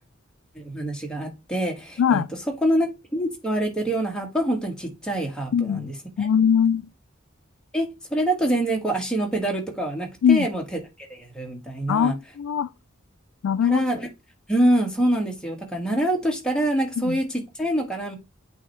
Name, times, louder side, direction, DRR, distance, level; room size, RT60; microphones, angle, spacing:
voice 1, 0.5-2.2 2.6-2.9 3.1-6.3 7.7-12.1 13.6-14.1 14.5-18.2, right 1 dB, 5° left, 1.3 m, -25 dB
voice 2, 2.0-2.3 5.5-5.9 6.2-6.9 10.2-10.5 11.9-12.7 13.4-13.8 17.0-17.2, left 7 dB, 85° left, 0.3 m, -21 dB
8.3 x 2.8 x 4.4 m
head